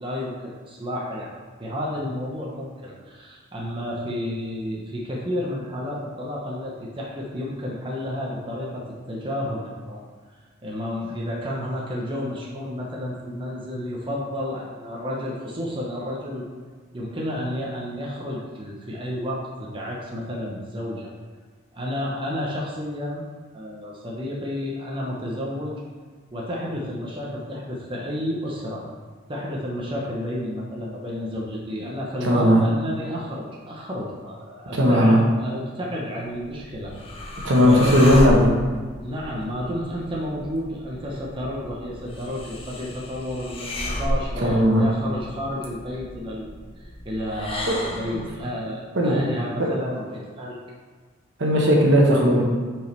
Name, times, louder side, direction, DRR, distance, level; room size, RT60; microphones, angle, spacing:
voice 1, 0.0-1.3 1.6-10.0 10.6-16.4 16.9-21.1 21.7-23.2 23.5-25.8 26.3-28.9 29.3-36.9 37.5-38.1 39.0-46.5 46.7-50.6, equal, 25° right, -4 dB, 0.9 m, -31 dB
voice 2, 32.2-32.6 34.7-35.2 37.4-38.5 44.4-44.9 47.7-47.8 48.1-48.2 48.9-49.3 49.6-49.7 51.4-52.4, equal, 65° right, -1 dB, 1.3 m, -17 dB
sound 1, 36.3-48.4, left 1 dB, 30° left, 0.9 m, -32 dB
5.6 x 5.2 x 4.5 m, 1.5 s
head